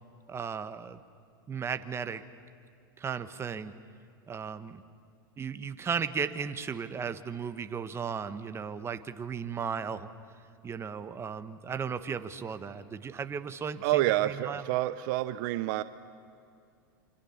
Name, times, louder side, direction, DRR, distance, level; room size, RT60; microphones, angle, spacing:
voice 1, 0.3-1.0 1.5-2.2 3.0-3.7 4.3-4.8 5.4-10.1 10.6-14.6, right 6 dB, 20° right, 11 dB, 1.2 m, -35 dB
voice 2, 13.8-15.8, right 15 dB, 60° right, 14 dB, 0.8 m, -28 dB
28.0 x 25.5 x 7.2 m, 2.4 s
hypercardioid pair, 110°, 12 cm